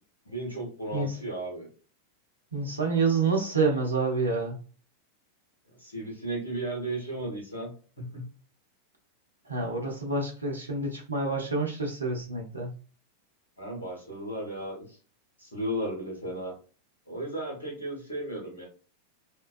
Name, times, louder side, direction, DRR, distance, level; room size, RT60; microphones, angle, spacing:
voice 1, 0.2-1.7 5.8-8.3 13.6-15.0 15.4-16.5 17.1-18.7, right 1 dB, 80° left, -2 dB, 1.2 m, -35 dB
voice 2, 2.5-4.6 9.5-12.7, right 3 dB, 80° right, 0 dB, 0.7 m, -28 dB
2.9 x 2.3 x 2.3 m, 0.38 s
figure-of-eight pair, 90°, 0 cm